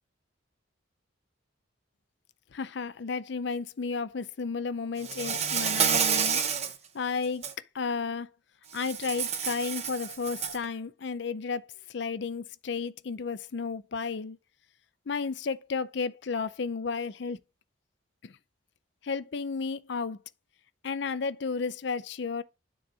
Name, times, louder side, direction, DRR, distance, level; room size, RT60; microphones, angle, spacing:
voice 1, 2.5-6.4 6.9-7.4 7.7-8.3 8.7-14.4 15.1-17.4 18.2-18.4 19.0-20.2 20.8-22.4, left 5 dB, 60° left, 0.5 m, -33 dB
Insect, 5.0-6.8 7.2-7.5 8.8-10.6, right 7 dB, 30° right, 0.8 m, -29 dB
9.6 x 3.9 x 4.8 m
head